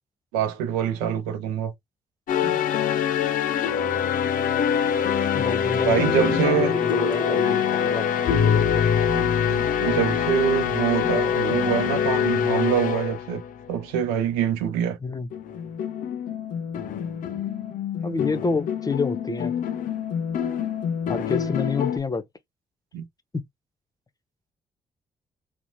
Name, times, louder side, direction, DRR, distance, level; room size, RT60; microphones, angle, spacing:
voice 1, 0.3-1.7 2.4-2.6 5.8-6.7 9.1-13.4 13.7-15.0 22.9-23.0, right 8 dB, 80° right, 0.5 m, -25 dB
sound 1, 2.3-13.9 15.3-22.0, left 8 dB, 60° left, 0.6 m, -24 dB
voice 2, 5.3-8.9 15.0-15.3 18.0-19.6 21.1-22.2 23.3-23.4, left 3 dB, 25° left, 0.7 m, -28 dB
2.8 x 2.1 x 2.6 m
hypercardioid pair, 40°, 16 cm